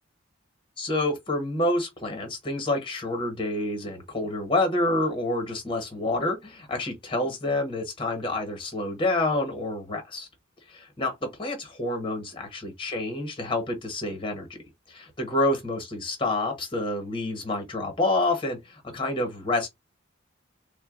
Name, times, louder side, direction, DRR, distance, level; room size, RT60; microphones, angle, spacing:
voice 1, 0.8-10.3 10.7-14.6 14.9-19.7, left 2 dB, 25° left, 1.2 m, -28 dB
3.9 x 2.2 x 3.8 m
head